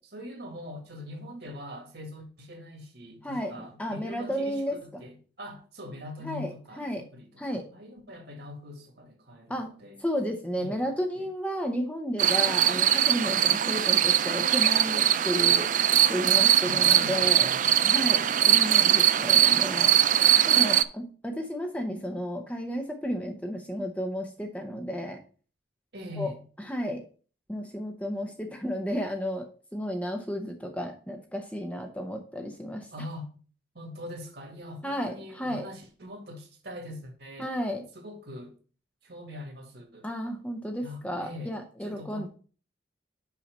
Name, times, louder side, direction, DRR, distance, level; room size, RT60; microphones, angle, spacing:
voice 1, 0.1-10.0 10.6-11.3 16.6-17.7 25.9-26.4 32.9-33.3 33.7-37.5 37.9-38.5 39.0-40.1 40.8-41.5 41.8-42.3, left 1 dB, 60° right, 2.0 m, -43 dB
voice 2, 3.8-5.0 6.2-7.0 7.4-7.6 9.5-9.7 10.0-15.7 16.1-17.5 17.8-20.0 20.5-25.2 26.2-26.3 26.7-27.0 27.5-29.5 29.7-32.9 34.8-35.7 37.4-37.9 40.0-42.3, equal, 5° left, 0.7 m, -32 dB
sound 1, 12.2-20.8, right 10 dB, 40° right, 0.3 m, -21 dB
5.8 x 5.6 x 5.4 m
head